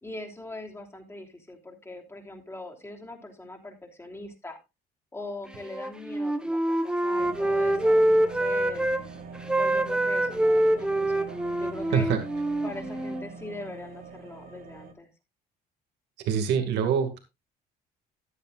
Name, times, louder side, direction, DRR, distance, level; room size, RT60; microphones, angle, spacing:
voice 1, 0.0-4.6 5.1-8.9 9.6-12.1 12.6-15.1, left 2 dB, 15° left, 2 dB, 3.1 m, -41 dB
Wind instrument woodwind instrument, 5.6-9.0 9.3-13.3, right 1 dB, 5° right, 1.2 m, -25 dB
sound 1, 7.2-14.9, right 5 dB, 60° right, 2.5 m, -43 dB
voice 2, 16.2-17.2, right 7 dB, 85° right, 6 dB, 2.2 m, -24 dB
14.0 x 10.5 x 2.5 m, 0.24 s
cardioid pair, 110°, 17 cm